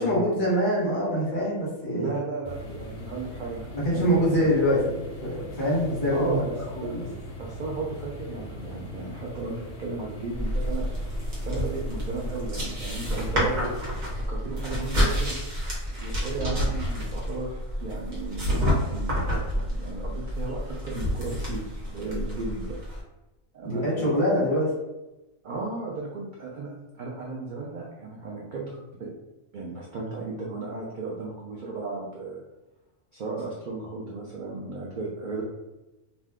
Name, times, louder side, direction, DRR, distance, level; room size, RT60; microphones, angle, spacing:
voice 1, 0.0-2.1 3.8-7.1 23.6-24.7, equal, 40° left, -7 dB, 1.1 m, -24 dB
voice 2, 1.9-4.5 6.1-7.1 7.4-10.8 11.4-13.7 14.1-15.4 15.9-22.8 23.5-24.1 25.4-29.1 29.5-32.4 33.1-35.4, right 3 dB, 75° right, -3 dB, 0.4 m, -35 dB
sound 1, 2.4-14.1, equal, 55° left, 0.9 m, -40 dB
sound 2, 10.3-23.0, equal, 60° right, 1.1 m, -29 dB
2.6 x 2.2 x 3.5 m, 1.0 s
omnidirectional pair, 1.4 m